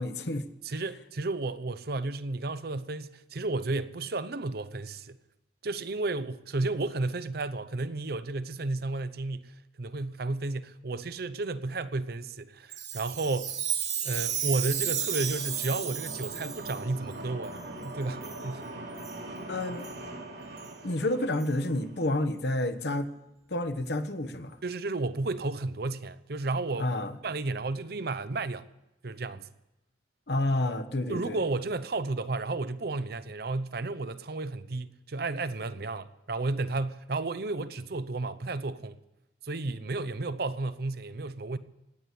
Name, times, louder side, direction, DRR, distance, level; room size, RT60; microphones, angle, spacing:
voice 1, 0.0-0.4 19.5-19.9 20.8-23.1 23.5-24.6 26.8-27.2 30.3-31.4, left 1 dB, 70° left, 1.2 m, -29 dB
voice 2, 0.6-5.2 5.6-13.6 14.0-18.7 24.6-26.9 27.2-28.7 29.0-29.5 31.1-39.0 39.4-41.6, right 2 dB, 60° right, 0.7 m, -32 dB
Chime, 12.7-16.8 17.4-17.5 18.2-18.4 19.0-19.2 19.8-19.9 20.6-20.7 21.4-21.5, right 9 dB, 40° right, 1.7 m, -33 dB
sound 1, 14.3-22.1, right 1 dB, 90° right, 4.2 m, -42 dB
17.0 x 9.5 x 8.4 m
head